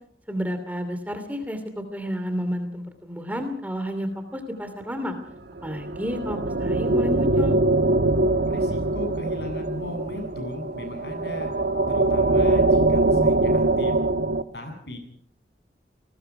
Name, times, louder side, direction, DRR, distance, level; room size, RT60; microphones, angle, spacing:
voice 1, 0.3-5.1 5.6-7.5, equal, 10° right, 8 dB, 2.8 m, -31 dB
sound 1, 5.6-14.4, right 2 dB, 75° right, 1.2 m, -22 dB
voice 2, 8.5-11.5 11.9-13.9 14.5-15.0, left 1 dB, 75° left, 5 dB, 8.0 m, -36 dB
29.5 x 20.5 x 4.9 m, 0.62 s
head